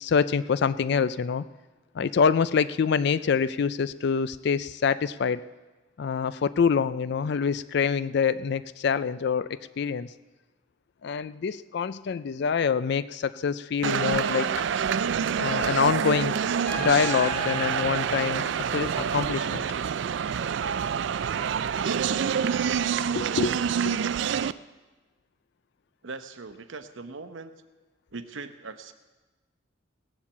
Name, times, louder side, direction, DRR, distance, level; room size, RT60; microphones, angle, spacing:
voice 1, 0.0-1.4 1.9-5.4 6.0-10.1 11.0-14.5 15.4-16.4 16.7-19.6 23.2-23.6 23.9-24.0, left 6 dB, 55° left, 14 dB, 0.4 m, -26 dB
sound 1, 13.8-24.5, right 7 dB, 65° right, 0.4 m, -27 dB
Trumpet, 16.7-19.3, left 2 dB, 10° left, 2.1 m, -38 dB
voice 2, 26.0-27.5 28.1-28.9, right 3 dB, 80° right, 9 dB, 0.9 m, -40 dB
18.0 x 7.2 x 7.2 m, 1.2 s
head